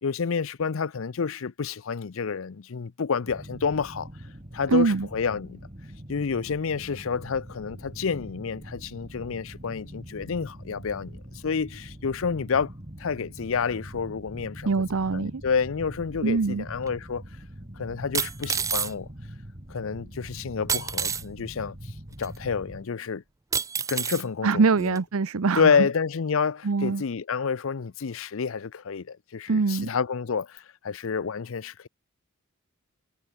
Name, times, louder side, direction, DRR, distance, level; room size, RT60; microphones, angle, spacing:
voice 1, 0.0-4.1 4.5-5.7 6.1-12.7 13.0-14.7 15.1-17.2 17.8-19.1 19.7-23.2 23.9-25.0 25.6-31.9, left 5 dB, 65° left, 0.5 m, -29 dB
sound 1, 3.3-22.9, equal, 30° right, 2.5 m, -43 dB
voice 2, 4.7-5.1 14.6-15.4 16.2-16.6 24.4-25.9 26.6-27.0 29.5-29.9, right 4 dB, 75° right, 0.7 m, -23 dB
sound 2, 16.9-17.0 18.1-18.9 20.7-21.2 22.2-22.3 23.5-24.2 25.0-25.1, right 6 dB, 15° right, 0.3 m, -28 dB
head